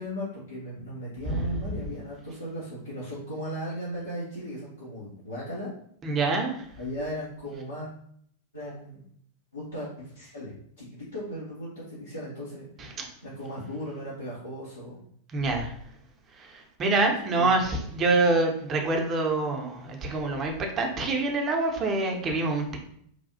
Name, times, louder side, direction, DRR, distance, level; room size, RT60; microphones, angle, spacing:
voice 1, 0.0-5.7 6.8-7.9 8.5-9.0 9.5-15.0 17.4-17.9, equal, 80° left, -9 dB, 0.8 m, -37 dB
voice 2, 1.3-1.6 6.0-6.7 15.3-15.7 16.4-22.8, right 3 dB, 25° right, 2 dB, 0.6 m, -26 dB
3.1 x 2.3 x 2.7 m, 0.66 s
figure-of-eight pair, 90°, 0 cm